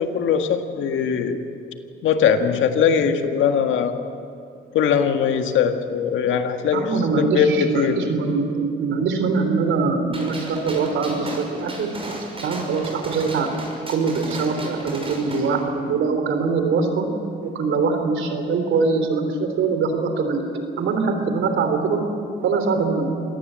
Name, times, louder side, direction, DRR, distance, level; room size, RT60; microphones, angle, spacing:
voice 1, 0.0-1.4 2.0-4.0 4.7-6.8 7.2-8.0, left 7 dB, 75° left, 6 dB, 1.8 m, -20 dB
voice 2, 6.7-11.9 12.4-13.5 13.9-17.1 17.4-20.4 20.8-22.0 22.4-23.1, right 4 dB, 75° right, 6 dB, 3.5 m, -22 dB
Gunshot gunfire, 10.1-15.6, right 2 dB, 30° right, 6.1 m, -35 dB
26.0 x 18.5 x 7.7 m, 2.5 s
cardioid pair, 90°, 20 cm